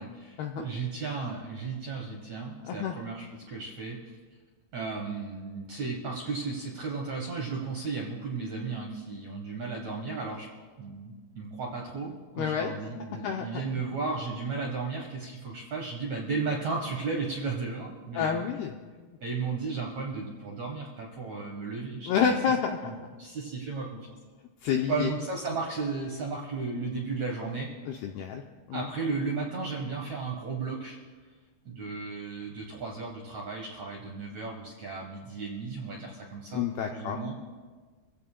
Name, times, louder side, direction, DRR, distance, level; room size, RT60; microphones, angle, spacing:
voice 1, 0.0-4.0 4.7-10.5 10.8-18.4 19.2-22.3 22.8-22.9 23.2-24.2 24.9-27.7 28.7-31.0 31.6-36.6 36.9-37.3, right 4 dB, 70° right, -1 dB, 1.7 m, -34 dB
voice 2, 2.6-3.0 12.4-12.7 13.1-13.8 18.1-19.2 22.1-22.8 24.6-25.1 27.9-28.4 28.7-28.9 36.5-37.2, left 7 dB, 85° left, 3 dB, 2.3 m, -29 dB
25.5 x 16.0 x 2.2 m, 1.4 s
omnidirectional pair, 5.3 m